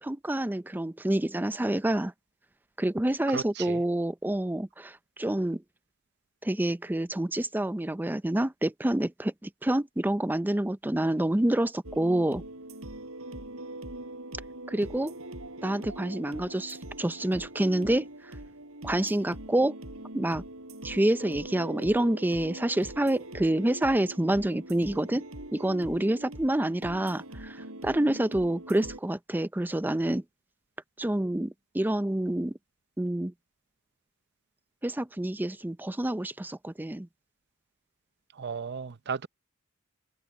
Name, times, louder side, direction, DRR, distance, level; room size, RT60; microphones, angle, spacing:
voice 1, 0.0-2.1 2.8-5.6 6.4-12.4 14.7-15.1 15.6-18.4 18.8-19.8 20.1-20.4 20.8-25.3 25.5-30.2 31.0-32.6 33.0-33.3 34.8-37.1, right 1 dB, 10° right, 0.5 m, -28 dB
voice 2, 3.3-3.8 38.4-39.3, right 6 dB, 50° right, 0.7 m, -35 dB
sound 1, 11.8-29.0, right 1 dB, 70° right, 7.1 m, -42 dB
head